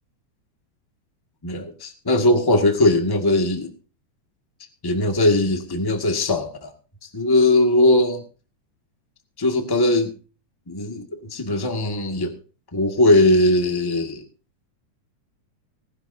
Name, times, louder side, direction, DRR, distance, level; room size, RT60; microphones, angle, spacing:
voice 1, 1.4-3.7 4.8-6.7 7.1-8.2 9.4-10.1 10.7-12.3 12.7-14.2, left 2 dB, 10° left, 4 dB, 1.3 m, -19 dB
19.0 x 12.5 x 2.7 m, 0.37 s
omnidirectional pair, 3.5 m